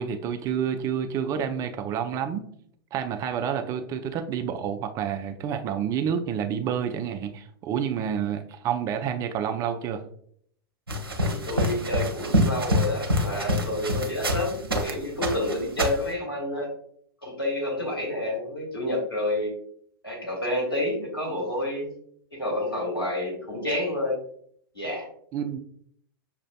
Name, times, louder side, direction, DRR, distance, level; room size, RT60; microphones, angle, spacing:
voice 1, 0.0-2.5 2.9-10.0 25.3-25.6, right 8 dB, 25° right, 7 dB, 0.4 m, -29 dB
sound 1, 10.9-14.9 15.2-16.1, equal, 80° right, 0.7 m, -26 dB
voice 2, 11.2-16.7 17.2-19.5 20.0-21.9 22.3-24.2 24.7-25.1, left 1 dB, 90° left, -3 dB, 1.4 m, -29 dB
6.1 x 2.5 x 2.2 m, 0.64 s
figure-of-eight pair, 95°, 12 cm